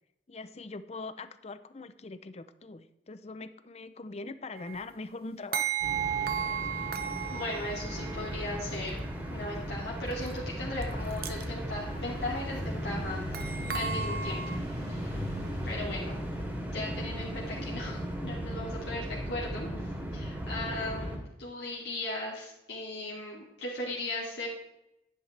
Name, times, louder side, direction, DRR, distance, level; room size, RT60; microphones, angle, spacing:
voice 1, 0.3-5.7 6.2-6.6, left 3 dB, 35° left, 12 dB, 0.6 m, -42 dB
sound 1, 4.6-4.8 5.5-8.5 10.3-10.4 10.8-10.9 11.1-11.4 13.3-14.6, right 8 dB, 60° right, 0.8 m, -34 dB
sound 2, 5.8-21.2, equal, 10° right, 2.8 m, -37 dB
voice 2, 7.3-9.0 9.3-14.4 14.9-15.2 15.6-16.2 16.7-24.5, left 2 dB, 70° left, -5 dB, 2.6 m, -37 dB
Engine, 9.6-17.5, left 1 dB, 35° right, 2.8 m, -43 dB
11.0 x 10.5 x 3.3 m, 0.87 s
head